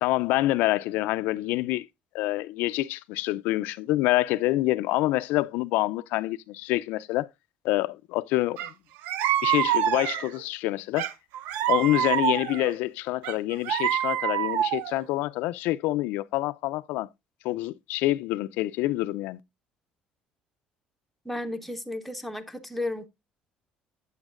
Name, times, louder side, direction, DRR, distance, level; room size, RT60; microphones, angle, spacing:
voice 1, 0.0-1.9 2.1-7.3 7.6-8.7 9.4-11.1 11.7-17.1 17.4-19.4, left 17 dB, 80° left, 0.3 m, -27 dB
sound 1, 8.6-8.7 9.0-10.4 11.0-12.7 13.2-15.0, right 11 dB, 85° right, 0.5 m, -26 dB
voice 2, 21.2-23.1, left 1 dB, ahead, 0.6 m, -33 dB
8.1 x 7.0 x 2.4 m
cardioid pair, 150°, 3 cm